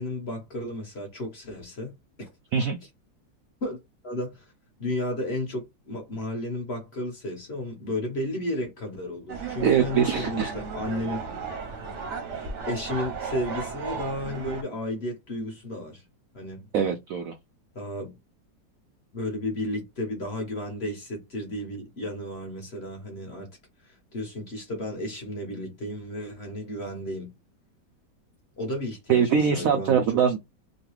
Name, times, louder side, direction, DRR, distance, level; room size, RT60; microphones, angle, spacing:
voice 1, 0.0-2.3 3.6-3.8 4.0-4.4 4.8-11.2 12.7-16.0 16.3-16.7 17.7-18.2 19.1-23.5 23.8-27.3 28.6-30.0, left 1 dB, 40° left, 1.1 m, -33 dB
sound 1, 9.3-14.6, right 5 dB, 55° right, 0.9 m, -35 dB
voice 2, 9.6-10.5 16.7-17.3 29.1-30.4, right 7 dB, 85° right, 0.7 m, -22 dB
3.1 x 2.3 x 3.1 m
omnidirectional pair, 2.0 m